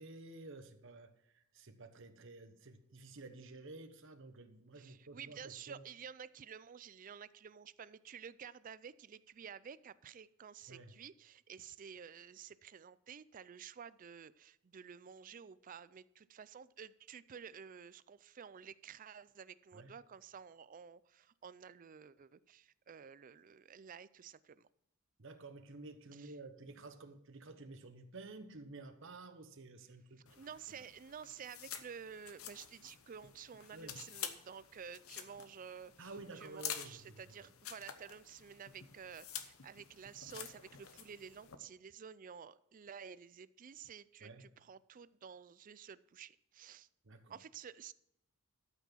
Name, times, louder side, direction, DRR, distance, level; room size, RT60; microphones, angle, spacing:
voice 1, 0.0-5.8 10.7-10.9 19.7-19.9 25.2-30.3 33.7-34.0 36.0-37.0 44.2-44.4 47.0-47.4, right 3 dB, 60° right, 8 dB, 1.1 m, -52 dB
voice 2, 4.7-24.7 26.1-26.4 30.3-46.9 47.3-47.9, right 7 dB, 40° right, 17 dB, 0.4 m, -52 dB
sound 1, 30.3-41.6, left 9 dB, 75° left, 1.0 m, -49 dB
12.5 x 6.0 x 5.7 m, 0.79 s
head